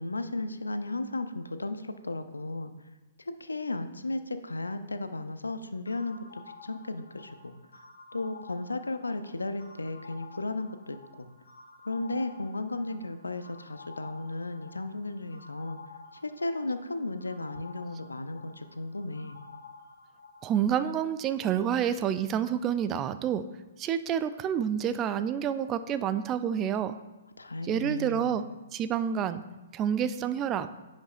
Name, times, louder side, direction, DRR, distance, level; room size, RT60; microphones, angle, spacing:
voice 1, 0.0-2.7 3.2-7.6 8.1-11.3 11.9-15.8 16.2-19.4 27.4-28.4, left 2 dB, 90° left, 10 dB, 0.4 m, -35 dB
sound 1, 5.9-20.6, left 4 dB, 70° left, 1.5 m, -51 dB
voice 2, 20.4-23.4 23.8-27.0 27.6-28.4 28.7-29.4 29.7-30.7, right 9 dB, 25° right, 12 dB, 0.3 m, -28 dB
10.0 x 5.2 x 2.4 m, 1.1 s
figure-of-eight pair, 125°, 0 cm